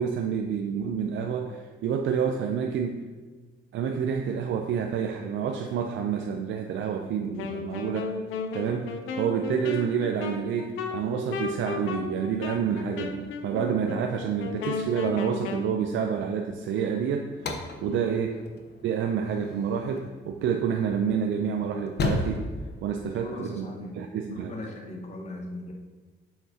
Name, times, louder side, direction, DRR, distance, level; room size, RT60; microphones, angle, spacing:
voice 1, 0.0-3.0 3.7-8.1 8.5-18.3 18.8-22.5 22.8-23.7 23.9-24.5, right 7 dB, 75° right, 4 dB, 0.5 m, -28 dB
Wind instrument woodwind instrument, 7.4-15.7, left 4 dB, 85° left, 0.7 m, -34 dB
sound 1, 17.3-23.7, left 3 dB, 55° left, 0.8 m, -35 dB
voice 2, 23.1-24.0 24.3-25.7, left 2 dB, 35° left, 1 dB, 1.1 m, -39 dB
7.4 x 5.8 x 2.8 m, 1.3 s
cardioid pair, 90°, 20 cm